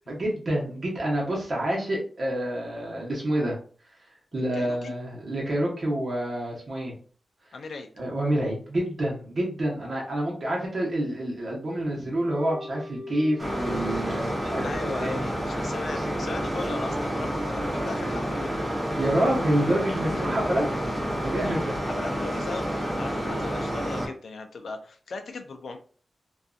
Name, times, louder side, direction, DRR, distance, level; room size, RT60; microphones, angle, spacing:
voice 1, 0.1-3.6 4.3-6.9 8.0-15.4 17.2-17.4 19.0-20.7 21.2-21.7, right 1 dB, 45° right, -3 dB, 0.9 m, -28 dB
voice 2, 4.5-4.9 7.5-7.9 12.0-12.1 14.4-18.6 20.1-20.4 21.4-25.8, left 3 dB, 70° left, 5 dB, 0.4 m, -38 dB
sound 1, 12.2-21.4, equal, 85° right, 0.9 m, -41 dB
sound 2, 13.4-24.1, equal, 15° right, 0.8 m, -29 dB
2.6 x 2.3 x 2.3 m, 0.42 s
wide cardioid pair, 140°, 0 cm